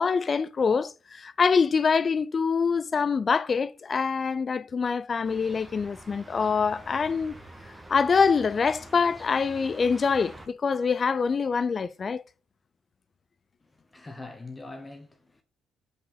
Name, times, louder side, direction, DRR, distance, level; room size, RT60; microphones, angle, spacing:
voice 1, 0.0-7.3 7.9-12.2, left 5 dB, 40° left, 0.4 m, -25 dB
sound 1, 5.2-10.5, right 1 dB, 15° right, 1.5 m, -46 dB
voice 2, 13.6-15.4, left 2 dB, 20° left, 1.2 m, -43 dB
5.5 x 4.9 x 4.4 m
hypercardioid pair, 50°, 0 cm